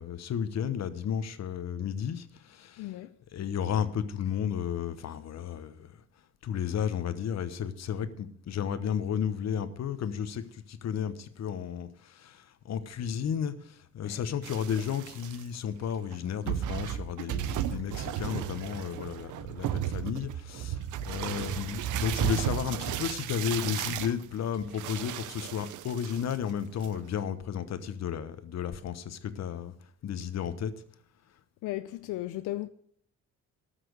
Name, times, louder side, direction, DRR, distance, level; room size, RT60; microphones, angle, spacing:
voice 1, 0.0-3.0 3.3-6.0 6.4-29.7 30.0-30.7, left 8 dB, 60° left, 1.1 m, -33 dB
voice 2, 2.8-3.1 14.0-14.2 31.6-32.7, left 16 dB, 85° left, 0.6 m, -35 dB
sound 1, 14.4-15.4 16.1-16.2 16.5-26.5 26.8-27.2, right 11 dB, 80° right, 0.7 m, -34 dB
13.0 x 6.0 x 8.0 m
cardioid pair, 90°, 30 cm